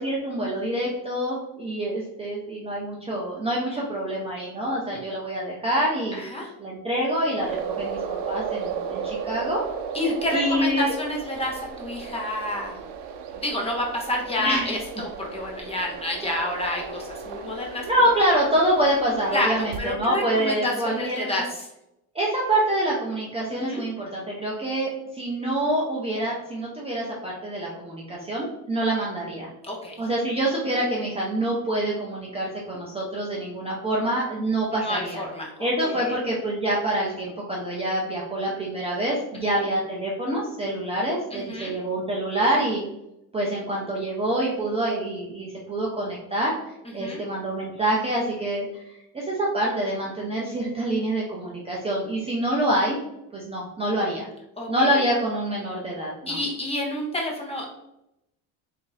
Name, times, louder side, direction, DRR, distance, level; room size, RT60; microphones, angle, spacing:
voice 1, 0.0-6.2 6.6-9.6 10.3-10.9 14.4-14.8 17.9-21.3 22.1-29.5 30.0-35.2 35.6-42.8 43.3-46.6 46.9-53.0 53.3-54.3 54.7-56.4, right 1 dB, 15° right, -4 dB, 0.5 m, -26 dB
voice 2, 6.1-6.5 9.9-12.8 13.3-17.9 19.3-21.6 23.5-23.8 29.6-30.1 30.7-30.8 34.8-36.2 41.3-41.8 47.0-47.2 54.6-54.9 56.3-57.7, left 1 dB, 15° left, -1 dB, 0.8 m, -29 dB
sound 1, 7.3-19.8, right 7 dB, 75° right, 0.6 m, -35 dB
3.5 x 2.7 x 3.9 m, 0.85 s
cardioid pair, 140°, 42 cm